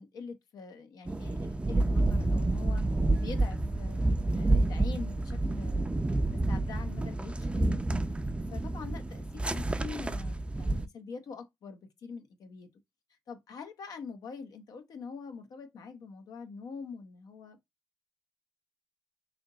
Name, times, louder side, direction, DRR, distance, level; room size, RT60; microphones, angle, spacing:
voice 1, 0.0-2.8 3.2-4.1 4.3-5.9 6.2-7.8 8.5-12.7 13.3-17.6, left 5 dB, 70° left, 0.9 m, -44 dB
sound 1, 1.0-10.8, right 2 dB, 15° right, 0.5 m, -29 dB
3.4 x 2.7 x 3.8 m
supercardioid pair, 55°, 7 cm